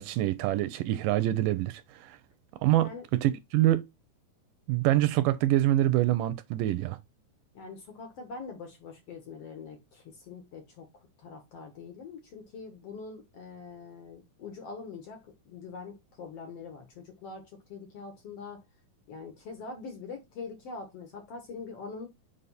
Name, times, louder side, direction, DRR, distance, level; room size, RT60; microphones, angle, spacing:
voice 1, 0.0-2.2 2.6-2.9 3.2-3.8 4.7-7.0, right 14 dB, 80° right, 2.1 m, -25 dB
voice 2, 7.5-10.9 11.2-18.6 19.1-22.1, left 4 dB, 60° left, 1.8 m, -43 dB
5.5 x 5.2 x 4.1 m
omnidirectional pair, 4.1 m